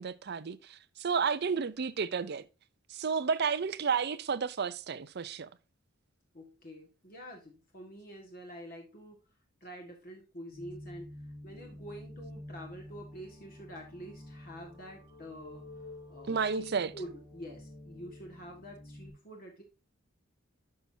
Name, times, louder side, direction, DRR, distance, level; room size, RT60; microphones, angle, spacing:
voice 1, 0.0-2.5 2.9-5.5 16.3-16.9, right 5 dB, 50° right, 0.5 m, -31 dB
voice 2, 6.3-19.6, equal, 40° left, 1.6 m, -47 dB
sound 1, 10.5-19.1, left 1 dB, 85° left, 5.0 m, -49 dB
11.0 x 5.8 x 2.7 m
head